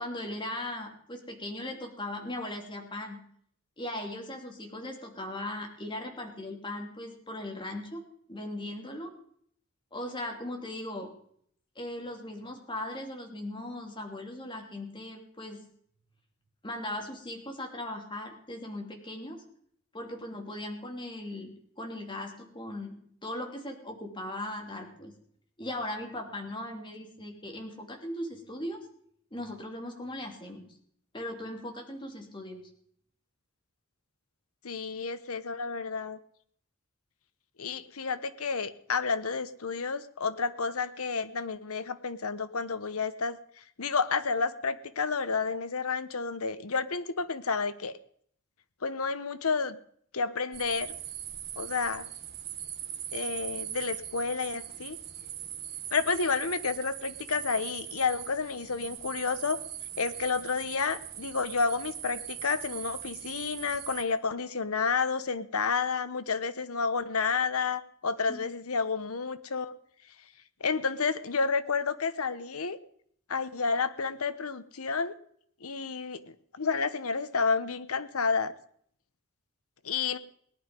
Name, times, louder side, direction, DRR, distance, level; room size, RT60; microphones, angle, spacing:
voice 1, 0.0-3.2 3.8-9.1 9.9-11.1 11.7-15.7 16.6-19.4 19.9-25.1 25.6-28.8 29.3-30.7 31.1-32.6 68.3-68.4, left 1 dB, 20° left, 2 dB, 2.9 m, -38 dB
voice 2, 34.6-36.2 37.6-47.9 48.8-49.8 50.1-51.0 51.6-52.1 53.1-55.0 55.9-59.6 60.0-69.7 70.6-72.8 73.3-75.1 75.6-78.5 79.8-80.2, left 5 dB, 75° left, 13 dB, 1.0 m, -30 dB
sound 1, 50.5-64.0, right 11 dB, 50° right, 1.6 m, -41 dB
18.5 x 11.0 x 5.3 m, 0.64 s
head